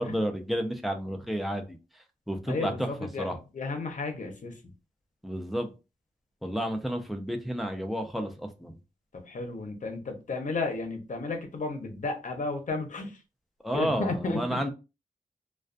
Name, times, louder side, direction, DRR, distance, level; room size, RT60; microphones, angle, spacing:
voice 1, 0.0-2.9 3.2-3.4 5.2-5.7 6.4-8.8 13.6-14.7, equal, ahead, 0.5 m, -31 dB
voice 2, 2.5-4.6 9.1-13.2 13.7-14.6, left 3 dB, 60° left, 0.7 m, -33 dB
2.3 x 2.2 x 2.5 m
wide cardioid pair, 75°, 15 cm